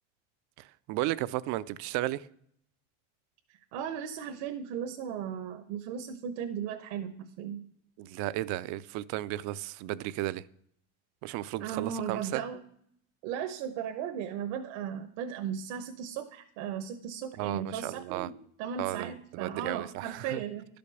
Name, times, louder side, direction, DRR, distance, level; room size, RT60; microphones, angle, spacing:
voice 1, 0.6-2.3 8.0-10.4 11.2-12.4 17.4-18.3 18.8-20.4, right 16 dB, 55° right, 0.5 m, -34 dB
voice 2, 3.7-7.7 11.6-12.6 13.2-18.3 18.6-20.7, right 8 dB, 70° right, 1.0 m, -36 dB
11.5 x 5.2 x 6.8 m
supercardioid pair, 140°, 35 cm